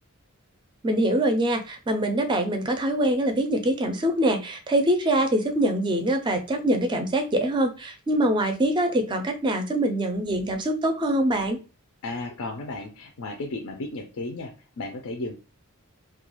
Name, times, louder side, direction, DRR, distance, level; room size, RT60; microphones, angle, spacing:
voice 1, 0.8-11.6, right 1 dB, 20° right, 6 dB, 0.4 m, -24 dB
voice 2, 12.0-15.3, left 2 dB, 75° left, 3 dB, 0.4 m, -34 dB
2.3 x 2.3 x 3.0 m, 0.32 s
head